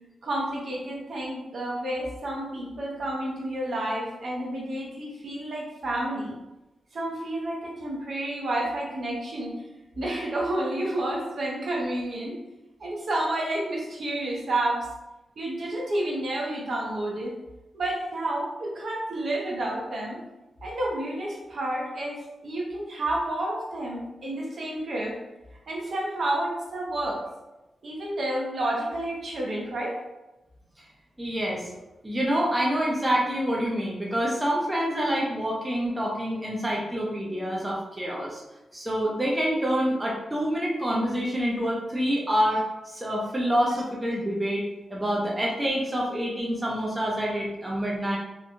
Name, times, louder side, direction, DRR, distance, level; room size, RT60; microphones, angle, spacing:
voice 1, 0.2-6.3 6.9-9.5 10.0-12.4 12.8-14.9 15.4-17.3 17.7-20.2 20.6-25.2 25.7-27.2 27.8-30.0, right 1 dB, 55° right, -2 dB, 0.6 m, -30 dB
voice 2, 31.2-31.7 32.0-38.4 38.7-44.6 44.9-48.2, equal, 15° right, -3 dB, 0.5 m, -27 dB
2.9 x 2.2 x 2.5 m, 1.0 s
wide cardioid pair, 125°, 0 cm